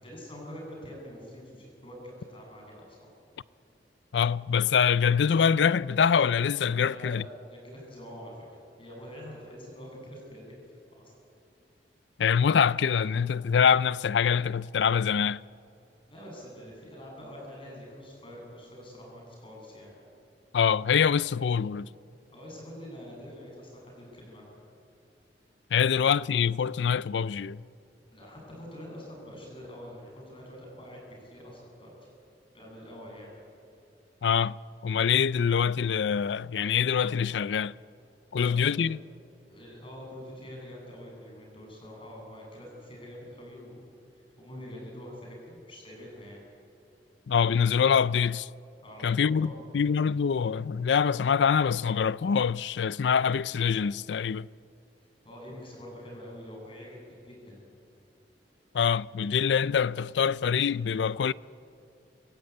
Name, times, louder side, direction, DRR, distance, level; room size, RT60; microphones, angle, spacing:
voice 1, 0.0-3.1 6.8-11.1 16.1-19.9 22.3-24.6 28.1-32.1 32.5-33.3 38.4-38.8 39.5-43.9 44.1-46.4 48.8-49.6 55.2-57.6, equal, 30° left, 7.8 m, -45 dB
voice 2, 4.1-7.2 12.2-15.4 20.5-21.9 25.7-27.6 34.2-34.6 34.8-37.7 38.3-39.0 47.3-48.5 49.0-54.5 58.7-61.3, left 7 dB, 85° left, 0.4 m, -25 dB
25.5 x 15.5 x 8.6 m
head